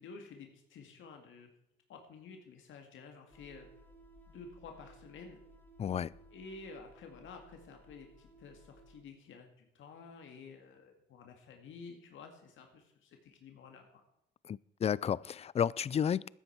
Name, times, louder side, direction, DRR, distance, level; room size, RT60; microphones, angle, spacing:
voice 1, 0.0-1.5 1.9-3.7 4.3-5.4 6.3-14.0, left 4 dB, 75° left, 2.0 m, -51 dB
sound 1, 3.3-9.0, right 1 dB, 10° left, 2.2 m, -59 dB
voice 2, 5.8-6.1 14.5-16.3, left 8 dB, 30° left, 0.3 m, -32 dB
14.0 x 9.8 x 4.6 m
cardioid pair, 90°, 20 cm